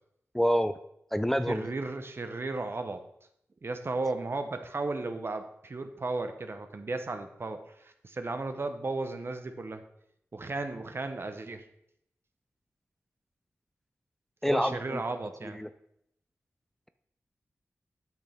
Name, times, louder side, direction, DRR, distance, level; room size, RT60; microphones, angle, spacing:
voice 1, 0.3-0.8 1.1-1.7 14.4-15.0 15.6-15.7, equal, 5° left, 10 dB, 0.4 m, -27 dB
voice 2, 1.5-3.0 3.6-9.8 10.3-11.6 14.5-15.6, right 3 dB, 50° right, 8 dB, 0.9 m, -35 dB
8.5 x 6.4 x 3.5 m, 0.76 s
cardioid pair, 50°, 5 cm